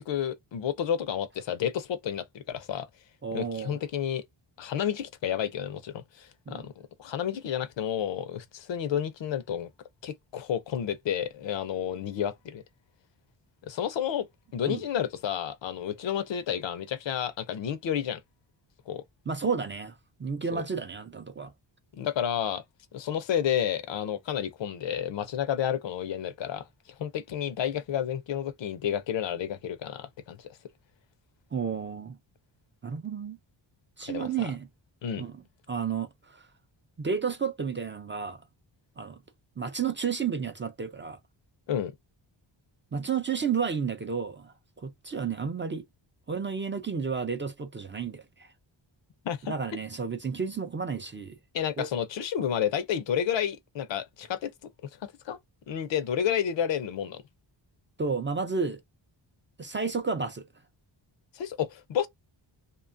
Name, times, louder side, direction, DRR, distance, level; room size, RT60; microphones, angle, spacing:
voice 1, 0.1-2.9 3.3-4.2 4.6-6.7 7.0-9.7 10.0-12.6 13.7-18.2 18.9-19.0 20.5-20.6 21.9-22.6 22.9-26.7 27.0-30.5 34.1-34.3 35.0-35.2 41.7-41.9 49.2-49.5 51.5-54.5 55.0-55.4 55.7-57.2 61.3-62.1, left 9 dB, 70° left, 0.6 m, -30 dB
voice 2, 3.2-3.8 6.5-6.6 14.7-14.8 19.3-21.5 31.5-32.2 32.8-33.4 34.0-34.7 35.2-35.4 35.7-36.5 37.0-38.4 39.0-39.2 39.6-41.2 42.9-45.8 46.3-48.5 49.5-51.4 51.8-51.9 58.0-58.8 59.6-60.5, right 6 dB, 25° right, 0.3 m, -32 dB
2.8 x 2.2 x 2.5 m
wide cardioid pair, 130°, 46 cm